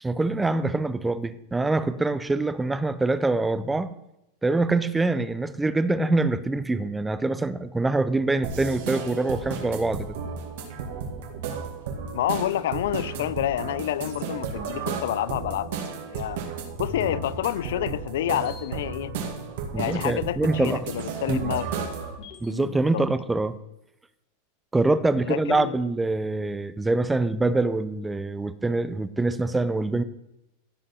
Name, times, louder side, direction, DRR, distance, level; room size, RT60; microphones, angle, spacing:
voice 1, 0.0-3.9 4.4-10.1 19.7-20.8 21.3-21.5 22.4-23.6 24.7-30.0, right 2 dB, 5° right, 0.5 m, -24 dB
sound 1, 8.4-22.2, right 6 dB, 65° right, 1.9 m, -34 dB
voice 2, 12.1-16.4 16.8-19.1 19.8-22.0 22.5-23.0 25.3-25.8, left 12 dB, 75° left, 0.4 m, -29 dB
sound 2, 14.4-16.4 16.7-22.6, left 6 dB, 45° left, 1.7 m, -45 dB
15.0 x 5.2 x 4.2 m
supercardioid pair, 150°, 0 cm